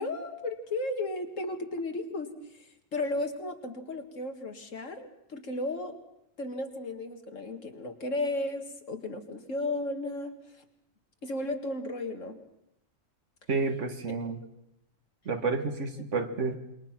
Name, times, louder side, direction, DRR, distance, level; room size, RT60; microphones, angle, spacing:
voice 1, 0.0-2.3 2.6-6.0 6.4-10.3 11.2-12.4 14.1-14.2, left 2 dB, 70° left, 5 dB, 2.3 m, -34 dB
voice 2, 13.5-14.4 15.3-16.6, right 4 dB, 65° right, 7 dB, 2.0 m, -30 dB
27.0 x 22.0 x 6.0 m, 0.82 s
omnidirectional pair, 1.4 m